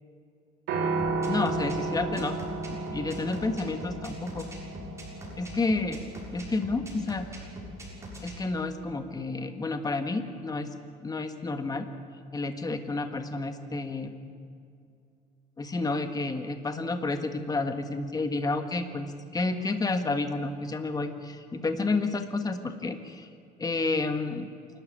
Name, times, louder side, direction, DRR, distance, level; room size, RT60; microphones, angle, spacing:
Piano, 0.7-8.9, right 3 dB, 85° right, 4.2 m, -34 dB
sound 1, 1.0-8.3, right 1 dB, 15° right, 6.7 m, -42 dB
voice 1, 1.3-2.3 2.7-4.5 5.4-6.0 6.3-7.5 8.2-10.7 11.0-11.9 12.3-14.1 15.6-23.3 23.6-24.5, left 3 dB, 20° left, 7 dB, 1.7 m, -30 dB
27.5 x 13.0 x 8.8 m, 2.4 s
cardioid pair, 110°, 17 cm